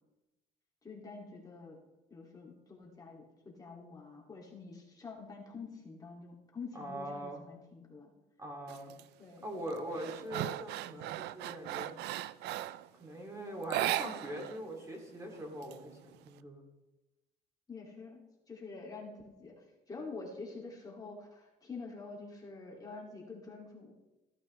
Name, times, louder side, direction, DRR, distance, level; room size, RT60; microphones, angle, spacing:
voice 1, 0.8-1.8 2.1-8.1 9.2-9.4 17.7-23.9, left 4 dB, 20° left, -2 dB, 2.5 m, -47 dB
voice 2, 6.7-7.4 8.4-8.9 9.4-12.0 13.0-16.6, right 1 dB, 20° right, 1 dB, 2.6 m, -42 dB
sound 1, 8.7-9.0 9.5-12.9 13.6-14.6 14.8-14.9 15.3-16.3, right 15 dB, 85° right, 0.5 m, -37 dB
15.0 x 13.0 x 3.3 m, 1.1 s
cardioid pair, 110°, 17 cm